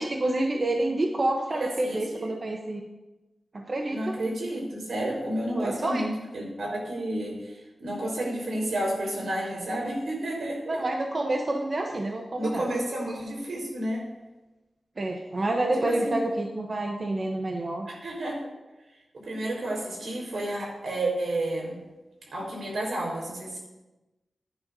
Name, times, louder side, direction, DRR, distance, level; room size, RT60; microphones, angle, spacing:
voice 1, 0.0-2.8 3.5-4.2 5.5-6.0 10.7-12.7 15.0-17.9, right 1 dB, 40° right, 1 dB, 0.9 m, -28 dB
voice 2, 1.5-2.3 3.9-10.8 12.4-14.0 15.8-16.2 17.9-18.5 19.1-21.8 22.3-23.6, right 1 dB, 80° right, -2 dB, 4.6 m, -31 dB
16.0 x 10.0 x 2.7 m, 1.1 s
wide cardioid pair, 140°, 0 cm